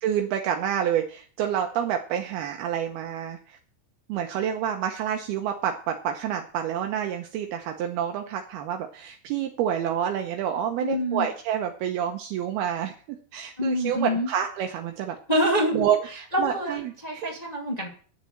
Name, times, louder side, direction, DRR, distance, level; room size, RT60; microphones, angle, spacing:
voice 1, 0.0-3.6 4.1-12.9 13.3-15.2 15.7-16.0 16.4-17.3, right 9 dB, 80° right, 4 dB, 2.3 m, -28 dB
voice 2, 10.8-11.3 13.6-14.3 15.3-17.9, equal, 25° left, -1 dB, 0.9 m, -26 dB
9.6 x 7.6 x 8.6 m, 0.42 s
omnidirectional pair, 5.5 m